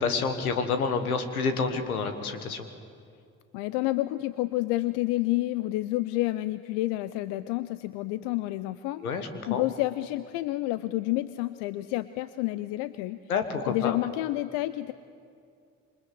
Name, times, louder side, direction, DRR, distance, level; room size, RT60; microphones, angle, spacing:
voice 1, 0.0-2.7 9.0-9.6 13.3-14.0, left 5 dB, 90° left, 9 dB, 1.6 m, -28 dB
voice 2, 3.5-9.0 9.5-13.2 13.7-14.9, left 17 dB, 70° left, 15 dB, 0.7 m, -29 dB
27.0 x 23.5 x 7.9 m, 2.3 s
hypercardioid pair, 45°, 42 cm